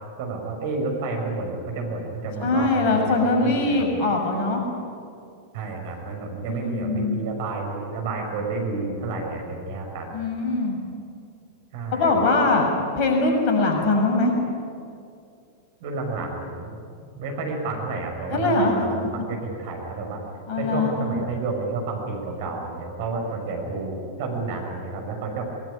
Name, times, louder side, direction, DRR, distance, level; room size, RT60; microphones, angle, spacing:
voice 1, 0.2-3.9 5.5-10.1 11.7-12.2 15.8-16.7 17.2-20.2 20.5-25.5, right 3 dB, 50° right, 1 dB, 6.2 m, -30 dB
voice 2, 2.4-4.6 6.5-7.2 10.1-10.8 11.9-12.7 13.0-14.3 18.3-18.8 20.5-21.1, left 3 dB, 40° left, 2 dB, 6.5 m, -22 dB
22.0 x 22.0 x 9.9 m, 2.4 s
figure-of-eight pair, 90°, 0 cm